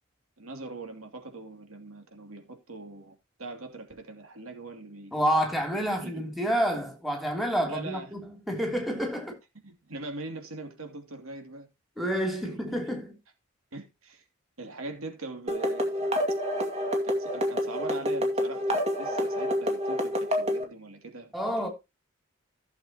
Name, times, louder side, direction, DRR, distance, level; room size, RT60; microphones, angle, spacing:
voice 1, 0.4-5.1 5.8-6.3 7.7-8.1 8.6-8.7 9.6-11.7 12.4-12.6 13.7-14.2 14.6-16.1 17.0-21.3 21.6-21.7, right 3 dB, 85° right, 2.8 m, -41 dB
voice 2, 5.1-9.4 12.0-13.2 21.3-21.7, equal, ahead, 3.0 m, -29 dB
sound 1, 15.5-20.6, equal, 30° right, 2.3 m, -28 dB
15.5 x 7.1 x 2.9 m
head